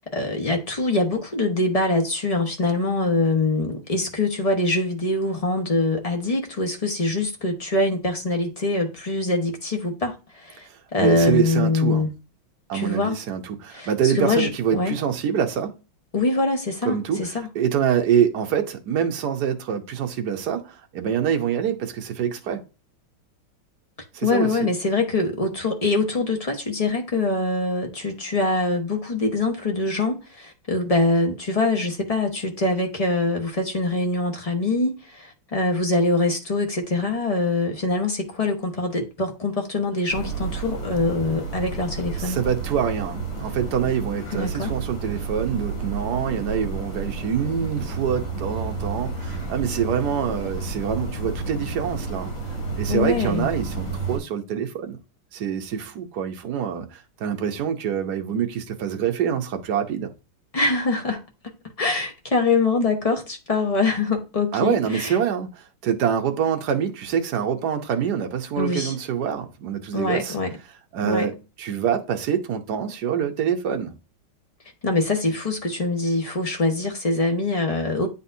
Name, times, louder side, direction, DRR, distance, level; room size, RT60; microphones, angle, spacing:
voice 1, 0.1-10.6 10.9-12.1 12.7-13.2 13.7-15.0 16.1-17.3 24.2-42.4 44.3-44.7 52.9-53.5 60.5-61.2 61.8-65.2 68.6-68.9 69.9-70.5 71.0-71.3 74.8-78.1, left 2 dB, 30° left, 0.7 m, -24 dB
voice 2, 10.6-12.1 12.7-15.7 16.8-22.6 24.1-24.6 42.2-52.3 52.8-55.0 55.3-60.1 64.5-70.4 70.9-74.0, right 8 dB, 60° right, 1.3 m, -25 dB
sound 1, 40.1-54.2, right 4 dB, 50° left, 3.9 m, -31 dB
9.5 x 4.1 x 2.7 m
omnidirectional pair, 2.2 m